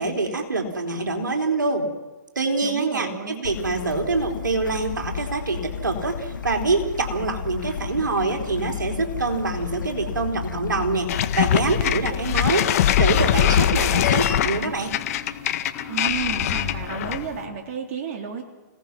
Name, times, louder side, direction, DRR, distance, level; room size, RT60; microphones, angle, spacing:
voice 1, 0.0-1.9 2.4-15.0, right 3 dB, 85° right, 3 dB, 4.3 m, -25 dB
voice 2, 2.6-3.4 15.9-18.4, right 7 dB, 45° right, 2 dB, 3.5 m, -32 dB
Bird / Stream, 3.4-12.4, left 6 dB, 85° left, 2.0 m, -33 dB
sound 1, 7.3-17.6, left 6 dB, 25° left, 4.9 m, -42 dB
sound 2, 11.1-17.3, left 10 dB, 50° left, 1.8 m, -22 dB
29.0 x 18.5 x 6.2 m, 1.2 s
hypercardioid pair, 130°, 10 cm